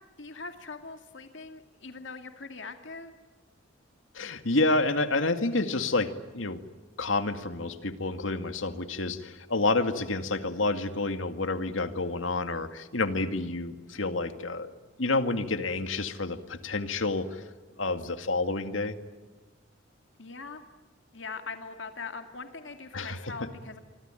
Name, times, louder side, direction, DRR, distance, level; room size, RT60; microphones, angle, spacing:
voice 1, 0.2-3.1 20.2-20.6 21.1-23.8, left 4 dB, 70° left, 7 dB, 2.2 m, -41 dB
voice 2, 4.1-6.6 7.0-14.7 15.0-17.4 17.8-19.0 22.9-23.3, left 2 dB, 85° left, 9 dB, 2.1 m, -29 dB
26.5 x 24.5 x 9.1 m, 1.3 s
head